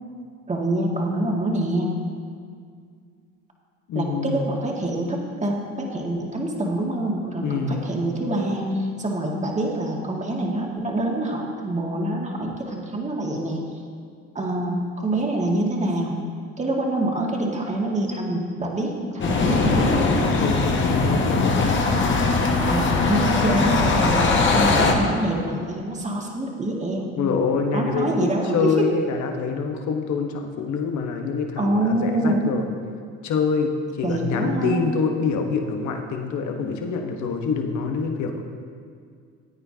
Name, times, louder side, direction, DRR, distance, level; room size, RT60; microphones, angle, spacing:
voice 1, 0.5-1.9 3.9-13.6 14.4-16.2 16.6-20.1 22.6-27.2 27.7-28.9 31.6-32.5 34.0-34.9, right 1 dB, 20° right, -1 dB, 1.9 m, -25 dB
voice 2, 3.9-4.5 7.4-7.8 20.4-21.9 27.2-28.3 28.5-32.7 33.2-38.4, left 5 dB, 60° left, 3 dB, 1.3 m, -25 dB
sound 1, 19.2-24.9, left 3 dB, 35° left, 1.5 m, -20 dB
14.5 x 8.9 x 2.8 m, 2.1 s
supercardioid pair, 80°, 33 cm